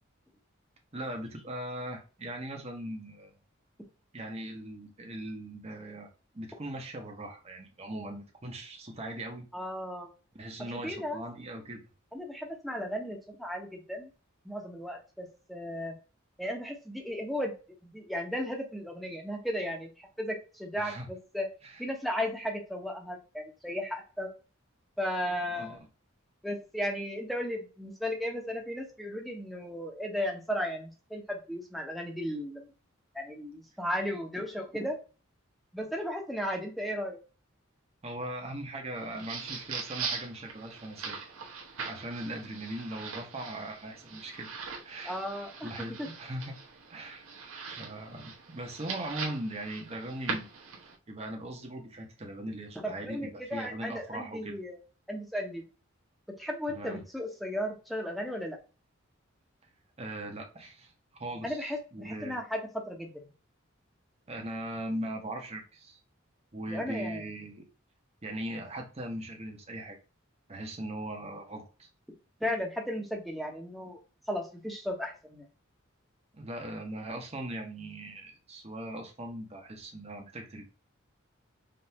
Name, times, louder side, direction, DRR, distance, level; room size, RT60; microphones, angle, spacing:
voice 1, 0.9-3.4 4.1-6.1 6.3-9.5 10.3-11.8 20.7-21.1 21.6-21.8 25.5-25.8 38.0-41.2 41.9-44.5 44.8-45.2 45.6-46.6 46.9-47.3 47.6-50.5 51.1-54.6 56.7-57.0 60.0-60.9 61.2-62.4 64.3-66.0 66.5-67.7 68.2-70.0 70.5-71.9 76.3-80.7, right 1 dB, 30° right, 2 dB, 1.1 m, -39 dB
voice 2, 9.5-10.1 10.7-11.2 12.1-14.1 14.4-16.0 16.4-17.5 17.8-19.9 20.2-21.5 21.8-24.3 25.0-25.8 26.4-32.7 33.1-35.0 35.7-37.2 45.0-45.7 46.0-46.1 52.8-54.8 55.1-55.6 56.4-58.6 61.4-62.6 62.9-63.1 66.7-67.2 72.4-74.0 74.3-75.4, equal, ahead, 1 dB, 1.0 m, -35 dB
sound 1, 38.9-51.0, right 5 dB, 85° right, 1.1 m, -41 dB
5.2 x 2.7 x 2.8 m, 0.34 s
head